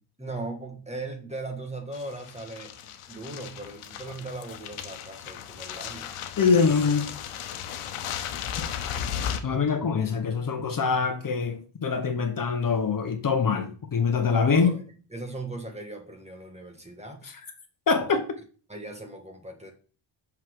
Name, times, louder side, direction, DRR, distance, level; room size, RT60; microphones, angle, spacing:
voice 1, 0.2-6.1 14.3-14.8 15.1-17.2 18.0-18.2 18.7-19.7, right 2 dB, 15° right, 1.6 m, -38 dB
sound 1, 1.9-9.4, left 9 dB, 90° left, 1.0 m, -36 dB
voice 2, 6.4-7.1 9.4-14.7 17.9-18.2, left 5 dB, 40° left, 1.1 m, -24 dB
5.9 x 5.8 x 4.7 m
cardioid pair, 110°, 49 cm